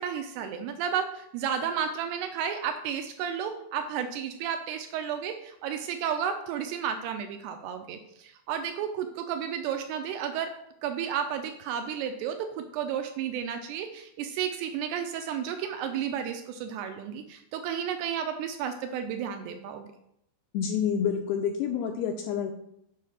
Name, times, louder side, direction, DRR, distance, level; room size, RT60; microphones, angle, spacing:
voice 1, 0.0-10.5 10.8-19.9, right 8 dB, 80° right, 6 dB, 2.5 m, -32 dB
voice 2, 20.5-22.5, left 8 dB, 85° left, 4 dB, 2.3 m, -28 dB
7.6 x 4.9 x 5.7 m, 0.75 s
omnidirectional pair, 5.1 m